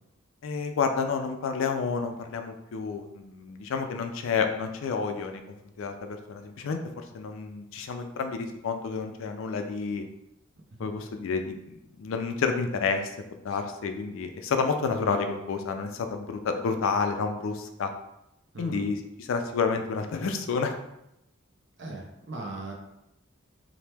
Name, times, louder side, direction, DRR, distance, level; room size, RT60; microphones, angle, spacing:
voice 1, 0.4-5.4 5.8-10.1 10.8-17.9 18.6-20.7, left 5 dB, 75° left, 6 dB, 0.3 m, -30 dB
voice 2, 18.5-18.9 21.8-22.7, right 2 dB, 55° right, 0 dB, 0.6 m, -38 dB
2.9 x 2.1 x 3.3 m, 0.85 s
head